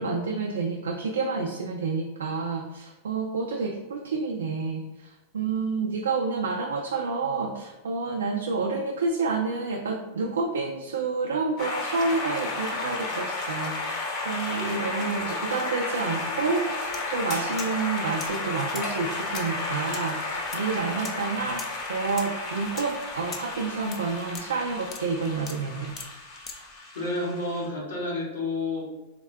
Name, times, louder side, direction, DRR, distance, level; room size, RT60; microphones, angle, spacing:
voice 1, 0.0-25.9, right 4 dB, 90° right, 2 dB, 0.3 m, -29 dB
sound 1, 11.6-27.7, left 2 dB, 50° left, 0.9 m, -33 dB
voice 2, 14.6-14.9 16.5-16.6 26.9-28.9, left 2 dB, 90° left, -4 dB, 1.2 m, -30 dB
sound 2, 16.9-17.0 17.3-17.8 18.2-26.7, left 5 dB, 35° left, 0.5 m, -41 dB
3.5 x 2.2 x 3.4 m, 1.0 s
hypercardioid pair, 115°, 0 cm